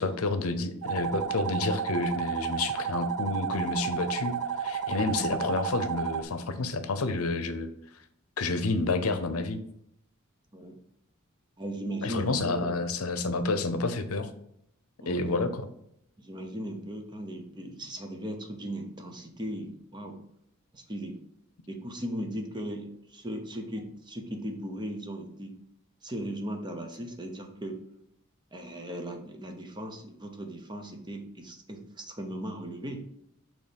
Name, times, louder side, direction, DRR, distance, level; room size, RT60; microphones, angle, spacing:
voice 1, 0.0-7.7 8.4-9.6 12.0-14.3 15.1-15.7, left 3 dB, 85° left, 10 dB, 0.7 m, -29 dB
sound 1, 0.8-6.2, right 7 dB, 90° right, 0.4 m, -32 dB
voice 2, 11.6-12.7 15.0-15.3 16.2-20.2 20.7-21.2 21.7-25.5 26.0-27.8 28.5-33.1, right 1 dB, 20° right, 4 dB, 0.8 m, -37 dB
6.7 x 3.1 x 5.2 m, 0.73 s
head